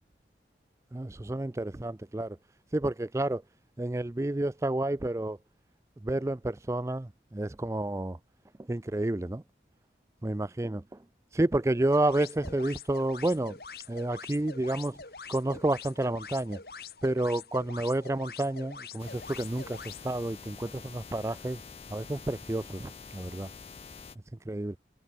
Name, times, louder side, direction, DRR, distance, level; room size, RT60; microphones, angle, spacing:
voice 1, 0.9-2.4 2.7-3.4 3.8-5.4 6.0-8.2 8.6-9.4 10.2-11.0 11.3-13.6 13.9-15.0 15.3-16.6 17.0-21.6 21.9-23.5 24.3-24.8, right 1 dB, 15° right, 0.4 m, -30 dB
sound 1, 11.9-20.0, left 5 dB, 60° left, 3.2 m, -45 dB
sound 2, 19.0-24.2, left 5 dB, 35° left, 0.7 m, -47 dB
head